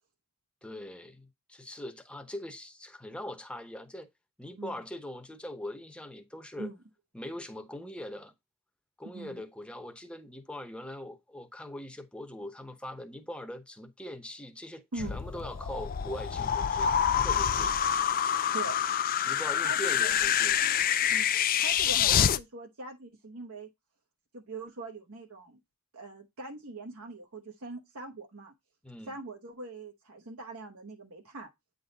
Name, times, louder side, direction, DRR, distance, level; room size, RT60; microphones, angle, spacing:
voice 1, 0.6-4.1 4.4-6.7 7.1-8.3 9.0-17.8 19.2-20.6 28.8-29.1, left 1 dB, 5° left, 0.8 m, -42 dB
sound 1, 15.0-22.4, left 9 dB, 40° left, 0.4 m, -27 dB
voice 2, 18.5-18.8 19.6-20.2 21.1-21.3 21.6-23.7 24.3-25.6 25.9-28.5 29.1-31.5, right 3 dB, 70° right, 1.1 m, -42 dB
9.0 x 3.9 x 4.0 m
head